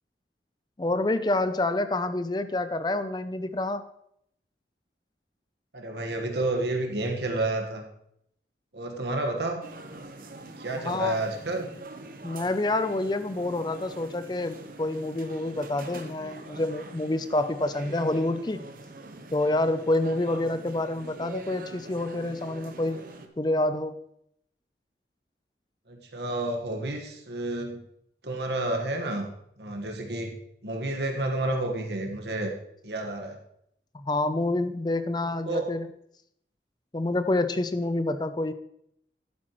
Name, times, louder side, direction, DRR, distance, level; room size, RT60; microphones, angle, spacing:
voice 1, 0.8-3.9 10.8-11.2 12.2-18.7 19.3-23.0 23.4-24.0 33.9-35.9 36.9-38.5, left 2 dB, 25° left, 11 dB, 0.5 m, -27 dB
voice 2, 5.7-7.8 8.7-9.7 10.6-11.7 25.9-27.8 28.2-29.3 29.6-30.4 30.6-32.5 32.8-33.4 35.2-35.7, right 2 dB, 75° right, 3 dB, 1.5 m, -30 dB
sound 1, 9.6-23.3, right 2 dB, 50° right, 0.9 m, -44 dB
11.5 x 8.8 x 3.1 m, 0.73 s
head